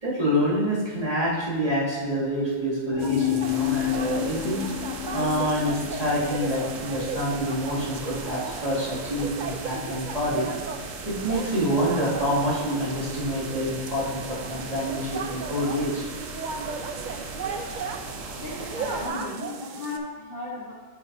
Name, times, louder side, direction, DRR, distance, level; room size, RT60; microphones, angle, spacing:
voice 1, 0.0-10.5 11.0-16.1, equal, 30° right, -10 dB, 2.4 m, -27 dB
sound 1, 2.9-8.3, left 15 dB, 75° left, 1.0 m, -30 dB
sound 2, 3.0-20.0, right 5 dB, 70° right, 0.4 m, -36 dB
sound 3, 3.4-19.1, right 2 dB, 90° right, 1.3 m, -39 dB
voice 2, 18.3-20.7, left 3 dB, 45° left, -5 dB, 1.3 m, -36 dB
8.7 x 5.8 x 2.7 m, 1.3 s
omnidirectional pair, 1.3 m